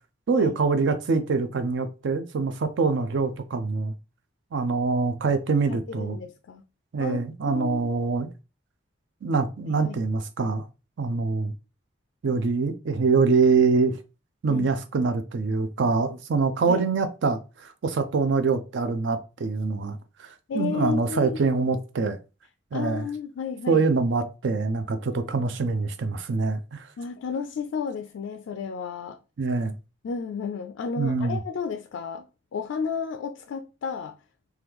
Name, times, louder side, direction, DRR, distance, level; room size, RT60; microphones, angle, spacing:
voice 1, 0.3-3.9 4.5-6.2 6.9-8.3 9.2-10.6 11.0-11.5 12.2-14.0 14.4-22.2 22.7-23.1 23.7-26.9 29.4-29.7 31.0-31.4, right 4 dB, 60° right, 0.4 m, -24 dB
voice 2, 5.7-6.6 7.0-7.9 9.8-10.0 14.5-14.7 16.7-16.8 20.5-21.5 22.7-23.8 27.0-29.2 30.0-34.2, left 6 dB, 70° left, 0.3 m, -32 dB
3.0 x 2.3 x 3.4 m
head